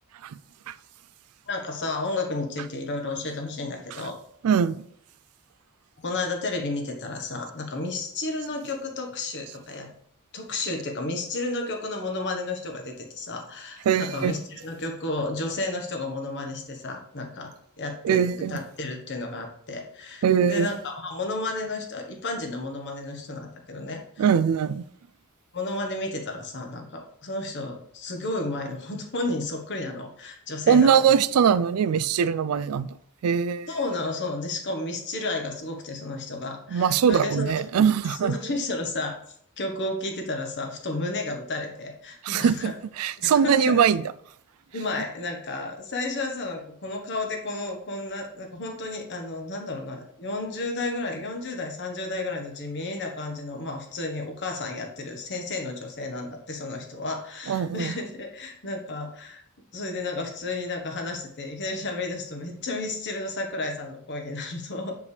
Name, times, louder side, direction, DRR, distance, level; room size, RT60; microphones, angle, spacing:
voice 1, 1.5-4.2 6.0-9.9 10.3-17.5 17.8-24.2 25.5-31.2 33.7-37.5 38.1-39.1 39.6-42.7 43.2-43.8 44.7-59.4 59.7-64.9, left 2 dB, 55° left, 1.2 m, -32 dB
voice 2, 4.4-4.8 13.9-14.3 18.0-18.6 20.2-20.7 24.2-24.8 30.7-32.9 33.2-33.7 36.7-38.3 42.2-44.0 57.5-57.9, right 7 dB, 75° right, 0.3 m, -21 dB
6.9 x 5.1 x 3.3 m
head